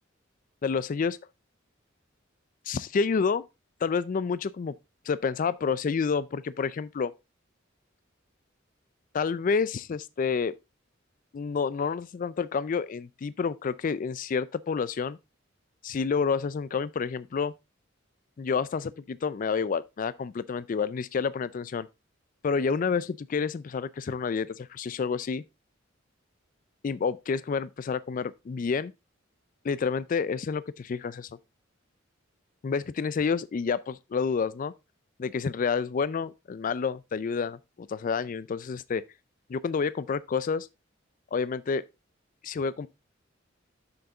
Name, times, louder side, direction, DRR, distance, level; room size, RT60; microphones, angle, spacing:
voice 1, 0.6-1.2 2.7-3.4 3.8-4.7 5.1-7.1 9.1-10.5 11.3-15.2 15.8-17.5 18.4-21.9 22.4-25.4 26.8-28.9 29.6-31.3 32.6-34.7 35.2-39.0 39.5-40.7 41.3-41.8 42.4-42.9, left 5 dB, 45° left, 0.4 m, -29 dB
7.2 x 6.4 x 3.8 m
head